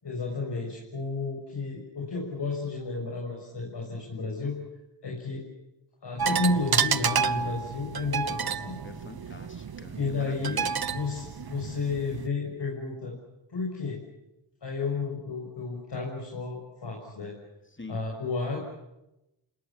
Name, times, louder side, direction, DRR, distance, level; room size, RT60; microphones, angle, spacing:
voice 1, 0.0-4.6 5.0-5.4 6.0-8.8 9.9-10.7 10.9-13.2 13.5-14.0 14.6-17.3 17.9-18.6, left 3 dB, 60° left, -1 dB, 6.6 m, -32 dB
sound 1, 6.2-12.3, right 6 dB, 50° right, 1.1 m, -30 dB
voice 2, 8.8-10.7 17.7-18.0, left 2 dB, 25° left, 6 dB, 3.6 m, -44 dB
28.0 x 19.0 x 10.0 m, 0.92 s
wide cardioid pair, 80°, 46 cm